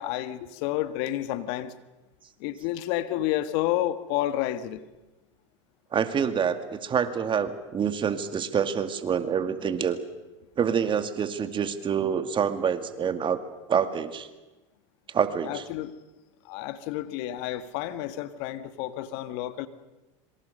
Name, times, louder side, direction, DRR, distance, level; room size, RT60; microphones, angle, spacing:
voice 1, 0.0-1.7 2.4-4.8 15.4-15.9 16.4-19.7, left 13 dB, 60° left, 12 dB, 1.6 m, -30 dB
voice 2, 5.9-10.0 10.6-13.4 13.7-14.3 15.1-15.6, right 7 dB, 30° right, 9 dB, 2.2 m, -26 dB
26.5 x 24.0 x 6.7 m, 1.1 s
hypercardioid pair, 95°, 16 cm